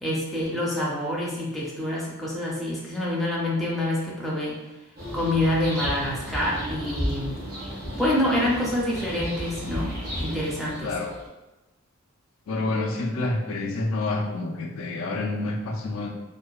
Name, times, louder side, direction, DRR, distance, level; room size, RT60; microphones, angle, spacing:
voice 1, 0.0-4.6 5.1-7.4 7.9-9.9 10.2-11.0, left 1 dB, ahead, -6 dB, 0.5 m, -26 dB
sound 1, 5.0-11.3, equal, 45° right, 0.8 m, -33 dB
voice 2, 12.5-16.1, left 2 dB, 70° left, 1 dB, 0.4 m, -28 dB
2.7 x 2.2 x 2.3 m, 1.0 s
head